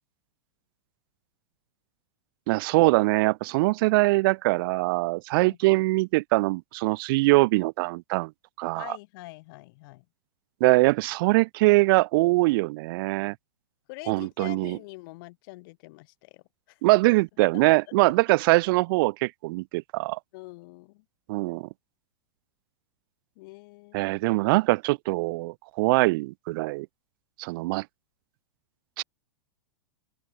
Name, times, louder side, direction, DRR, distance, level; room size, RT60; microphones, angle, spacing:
voice 1, 2.5-8.3 8.6-8.8 10.6-13.3 14.1-14.8 16.8-20.2 21.3-21.7 23.9-26.9 27.4-27.8 29.0-29.1, right 23 dB, 55° right, 2.6 m, -23 dB
voice 2, 5.4-5.8 8.7-10.1 13.2-13.4 13.9-16.8 17.4-18.1 20.3-21.1 23.4-24.2, left 24 dB, 55° left, 6.8 m, -45 dB
open air
hypercardioid pair, 110°, 14 cm